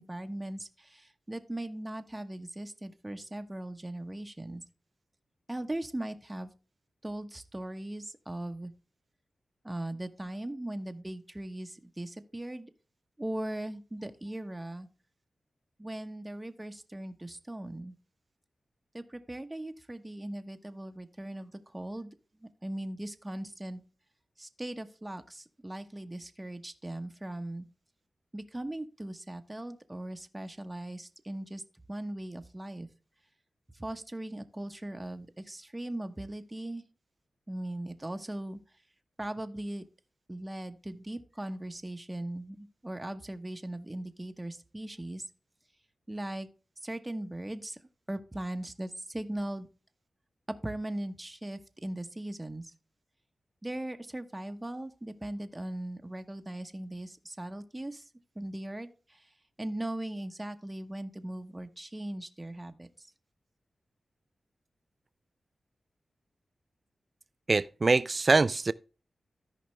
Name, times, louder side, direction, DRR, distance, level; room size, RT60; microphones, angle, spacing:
voice 1, 0.0-4.6 5.5-6.5 7.0-8.7 9.6-12.7 13.2-14.9 15.8-17.9 18.9-22.1 22.6-23.8 24.4-27.7 28.3-31.6 31.9-32.9 33.8-36.8 37.5-38.6 39.2-39.8 40.3-45.2 46.1-46.5 46.8-47.8 48.1-49.7 50.6-52.6 53.6-58.0 58.4-58.9 59.6-62.9, right 1 dB, 20° right, 1.0 m, -39 dB
voice 2, 67.5-68.7, right 3 dB, 45° right, 0.5 m, -24 dB
14.0 x 5.1 x 3.2 m
cardioid pair, 55°, 0 cm